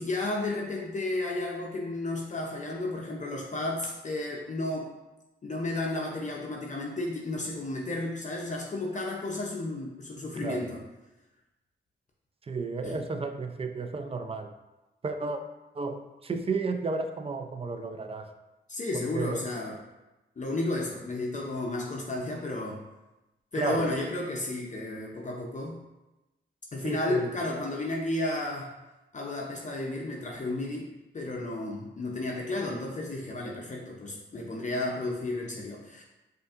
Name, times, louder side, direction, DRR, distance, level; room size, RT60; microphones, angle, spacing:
voice 1, 0.0-4.9 5.4-10.8 12.8-13.0 18.7-19.8 20.4-22.8 23.5-25.8 26.7-28.7 29.1-30.9 31.1-36.0, left 2 dB, 40° left, -1 dB, 0.6 m, -32 dB
voice 2, 12.5-14.5 15.0-15.4 15.7-18.3 19.1-19.4 23.5-23.9 26.8-27.4, right 3 dB, 30° right, 6 dB, 0.4 m, -32 dB
5.0 x 2.5 x 2.4 m, 1.0 s
cardioid pair, 65°, 20 cm